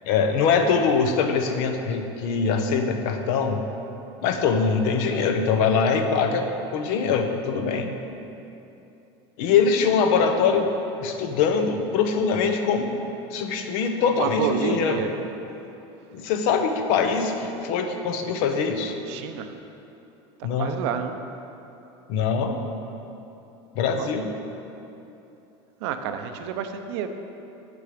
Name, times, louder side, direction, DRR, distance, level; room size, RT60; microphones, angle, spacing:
voice 1, 0.0-3.6 4.2-7.9 9.4-10.7 11.0-13.0 13.3-15.2 16.1-18.9 20.4-20.8 22.1-22.6 23.7-24.3, left 5 dB, 65° left, 6 dB, 0.8 m, -23 dB
voice 2, 14.2-15.2 19.1-19.5 20.6-21.2 24.0-24.1 25.8-27.1, right 8 dB, 75° right, 7 dB, 0.7 m, -29 dB
8.5 x 6.2 x 5.0 m, 2.9 s
supercardioid pair, 130°, 14 cm